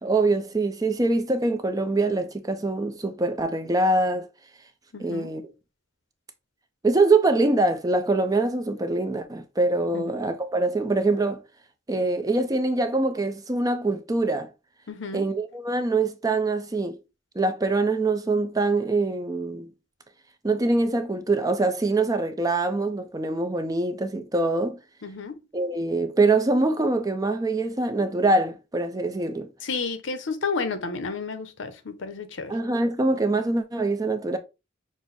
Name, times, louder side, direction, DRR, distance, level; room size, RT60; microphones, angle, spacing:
voice 1, 0.0-4.3 5.0-5.4 6.8-11.4 11.9-14.5 15.1-17.0 17.4-19.7 20.4-24.8 25.5-29.5 32.5-34.4, right 2 dB, 20° right, 0.5 m, -24 dB
voice 2, 4.9-5.3 9.9-10.0 14.9-15.2 25.0-25.3 29.6-32.5, left 4 dB, 70° left, 0.8 m, -31 dB
6.1 x 2.1 x 4.0 m
head